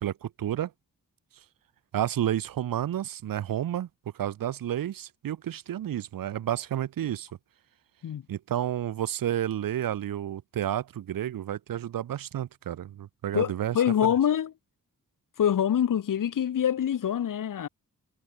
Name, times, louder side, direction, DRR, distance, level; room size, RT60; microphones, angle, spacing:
voice 1, 0.0-0.7 1.9-3.9 4.1-7.3 8.3-13.8, right 11 dB, 85° right, 0.6 m, -30 dB
voice 2, 13.3-14.5 15.4-17.7, left 9 dB, 70° left, 0.8 m, -25 dB
wide cardioid pair, 155°, 33 cm